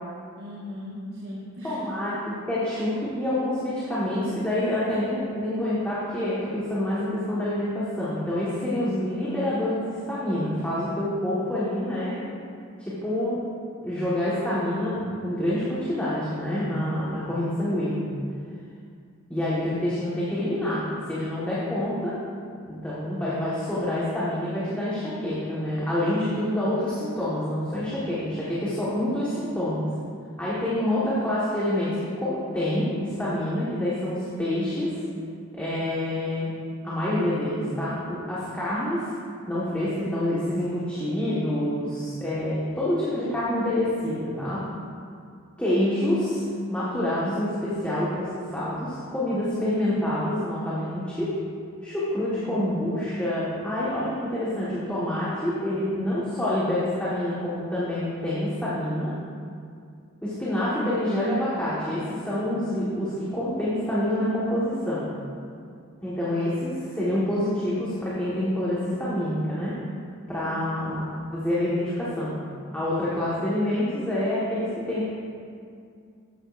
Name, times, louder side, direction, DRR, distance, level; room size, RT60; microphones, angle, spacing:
voice 1, 0.4-1.8 52.2-52.7 70.4-70.7, left 1 dB, 50° right, -8 dB, 1.6 m, -39 dB
voice 2, 1.6-12.2 12.8-13.4 13.8-18.0 19.3-20.8 21.1-22.1 22.7-29.9 30.4-34.9 35.5-36.5 36.8-39.0 39.5-44.6 45.6-51.3 51.8-59.1 60.2-65.1 66.0-69.7 70.3-71.0 71.3-72.3 72.7-75.1, left 1 dB, 5° left, -10 dB, 1.4 m, -27 dB
12.5 x 8.9 x 2.6 m, 2.3 s
head